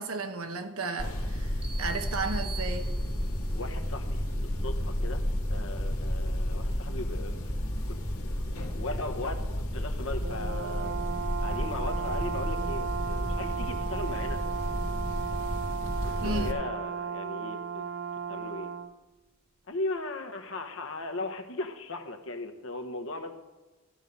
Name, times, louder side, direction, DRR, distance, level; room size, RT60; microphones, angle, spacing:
voice 1, 0.0-2.9 16.2-16.6, right 3 dB, 90° right, 6 dB, 1.1 m, -34 dB
sound 1, 1.0-16.5, equal, 85° left, 2.0 m, -32 dB
sound 2, 1.6-3.5, right 7 dB, 25° right, 1.2 m, -45 dB
voice 2, 3.5-5.2 5.5-7.5 7.9-11.1 11.4-14.4 16.0-17.9 18.3-18.7 19.7-23.4, left 2 dB, 65° left, 5 dB, 1.2 m, -38 dB
Brass instrument, 10.2-18.9, right 7 dB, 45° right, 0.5 m, -35 dB
13.5 x 5.5 x 7.9 m, 1.2 s
head